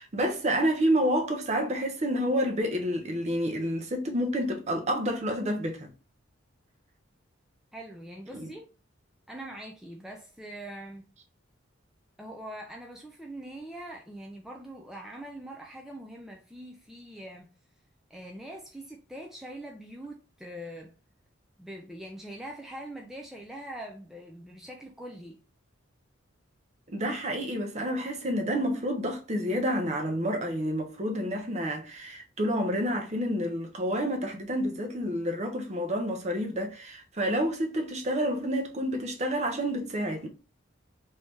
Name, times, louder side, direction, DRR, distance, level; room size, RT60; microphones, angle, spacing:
voice 1, 0.0-5.9 8.3-8.5 26.9-40.3, equal, 35° right, 0.7 m, -29 dB
voice 2, 7.7-8.7 9.3-11.1 12.2-17.5 18.1-20.9 21.6-25.4, right 1 dB, ahead, 0.4 m, -43 dB
3.1 x 2.7 x 3.4 m
head